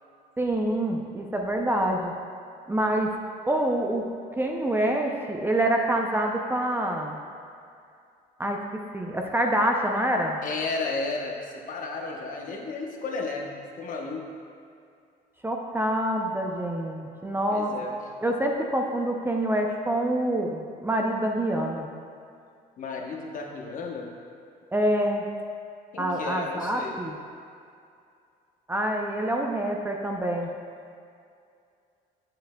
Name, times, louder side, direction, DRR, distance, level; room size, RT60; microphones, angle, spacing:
voice 1, 0.4-2.1 2.7-3.1 3.5-4.0 4.4-7.2 8.4-8.6 8.9-10.4 15.4-17.7 18.2-21.9 24.7-25.2 26.0-27.2 28.7-30.5, right 1 dB, 15° right, 1 dB, 0.5 m, -26 dB
voice 2, 10.4-14.3 17.5-18.0 22.8-24.1 25.9-27.0, left 3 dB, 50° left, 1 dB, 0.9 m, -33 dB
7.6 x 7.1 x 2.2 m, 2.4 s
cardioid pair, 110°, 17 cm